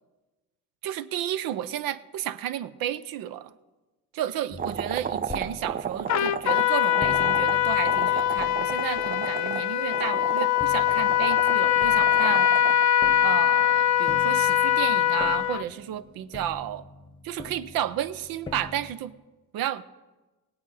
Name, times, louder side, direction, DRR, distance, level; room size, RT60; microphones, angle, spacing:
voice 1, 0.8-3.5 4.1-12.5 13.2-16.9 17.2-19.1 19.5-19.8, right 11 dB, 85° right, 15 dB, 0.7 m, -32 dB
sound 1, 4.5-10.2 10.6-18.9, left 3 dB, 15° left, 0.9 m, -44 dB
sound 2, 4.6-12.9, right 7 dB, 25° right, 0.4 m, -34 dB
Trumpet, 6.1-15.6, left 11 dB, 55° left, 0.5 m, -22 dB
17.5 x 8.8 x 5.6 m, 1.1 s
cardioid pair, 80°, 34 cm